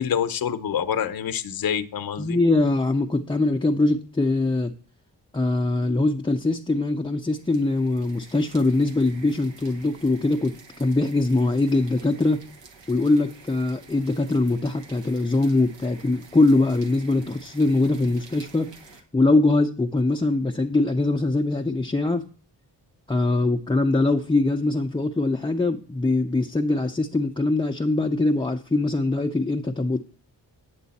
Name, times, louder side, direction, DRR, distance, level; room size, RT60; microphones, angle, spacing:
voice 1, 0.0-2.4, left 8 dB, 55° left, 11 dB, 0.7 m, -26 dB
voice 2, 2.2-4.7 5.3-12.4 12.9-18.7 19.1-22.3 23.1-30.0, left 2 dB, 10° left, 3 dB, 0.5 m, -22 dB
sound 1, 7.3-19.0, right 4 dB, 75° right, 1.2 m, -49 dB
9.3 x 6.8 x 4.1 m, 0.42 s
cardioid pair, 50°, 43 cm